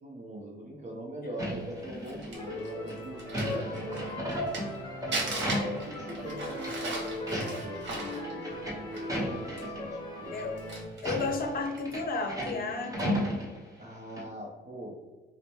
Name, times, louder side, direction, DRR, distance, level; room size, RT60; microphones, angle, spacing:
voice 1, 0.0-4.2 5.0-10.4 13.8-14.9, equal, 35° right, -2 dB, 0.7 m, -41 dB
sound 1, 1.4-2.5 2.9-6.3 6.6-6.7 7.1-7.8 8.1-9.8 10.3-10.4 10.9-13.9 14.2-14.3, equal, 15° right, 1.0 m, -35 dB
Crumpling crinkling, 1.8-4.8 5.1-9.2 9.6-9.7 10.2-11.1 11.7-11.9, right 2 dB, 65° right, 1.2 m, -38 dB
sound 2, 2.3-10.8, left 1 dB, 25° left, 0.9 m, -39 dB
voice 2, 11.0-13.3, left 3 dB, 50° left, 4 dB, 0.7 m, -33 dB
4.9 x 2.1 x 2.8 m, 1.2 s
cardioid pair, 90°, 20 cm